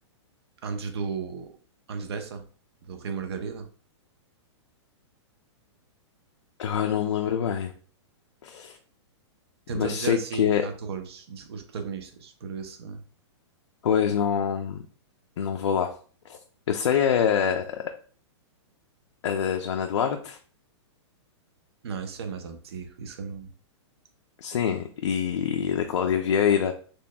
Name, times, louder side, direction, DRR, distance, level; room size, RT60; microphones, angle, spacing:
voice 1, 0.6-1.5 1.9-2.4 2.8-3.7 9.7-13.0 21.8-23.5, right 6 dB, 60° right, 6 dB, 0.7 m, -34 dB
voice 2, 6.6-7.7 8.4-8.8 9.7-10.7 13.8-14.8 15.4-15.9 16.3-16.4 16.7-17.9 19.2-20.4 24.4-26.8, left 8 dB, 75° left, 3 dB, 0.5 m, -25 dB
4.2 x 3.1 x 2.3 m, 0.42 s
hypercardioid pair, 180°, 15 cm